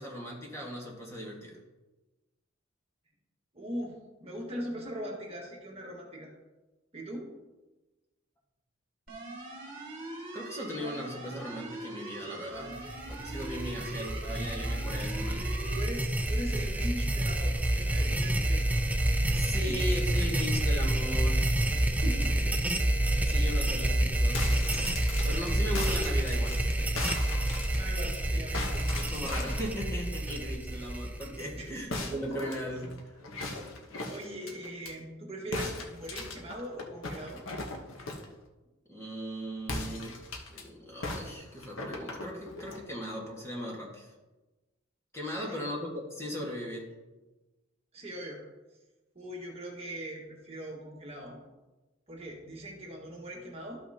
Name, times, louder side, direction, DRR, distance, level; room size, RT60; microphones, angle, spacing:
voice 1, 0.0-1.6 10.3-15.5 19.3-21.6 23.2-24.7 25.2-26.7 28.7-33.2 38.9-40.2 40.5-44.1 45.1-46.9, equal, 15° left, -3 dB, 1.7 m, -38 dB
voice 2, 3.5-6.3 6.9-7.3 15.7-18.8 19.3-19.8 21.7-22.5 23.2-23.3 27.7-29.0 31.5-31.7 34.1-37.4 45.2-45.6 47.9-48.4 49.2-51.4 52.1-53.8, equal, 30° right, -2 dB, 1.6 m, -40 dB
sound 1, 9.1-15.8, right 2 dB, 45° right, 1.8 m, -42 dB
sound 2, 12.7-31.8, right 1 dB, 10° right, 0.4 m, -29 dB
sound 3, 24.2-28.2 28.5-29.7 31.9-34.9 35.5-38.3 39.6-40.6 41.0-42.8, left 2 dB, 85° left, 1.1 m, -38 dB
13.0 x 5.7 x 2.9 m, 1.1 s
head